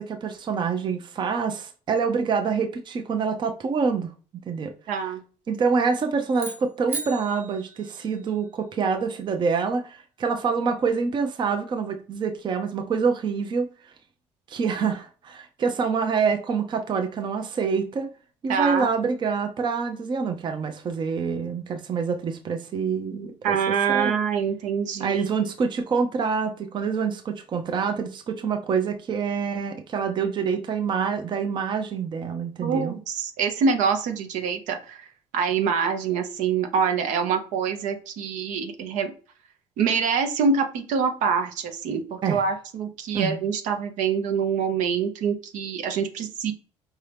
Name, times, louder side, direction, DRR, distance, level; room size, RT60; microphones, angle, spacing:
voice 1, 0.0-4.7 5.5-13.7 14.5-18.1 18.4-23.6 23.9-24.1 25.0-33.0 42.2-42.4 43.1-43.4, right 5 dB, 35° right, 0.6 m, -26 dB
voice 2, 4.9-5.2 18.5-18.9 23.4-25.3 32.6-35.0 35.3-39.1 39.8-46.5, right 6 dB, 75° right, 0.8 m, -25 dB
sound 1, 6.3-8.6, right 3 dB, 15° right, 1.4 m, -37 dB
4.7 x 2.8 x 3.3 m
cardioid pair, 110°, 13 cm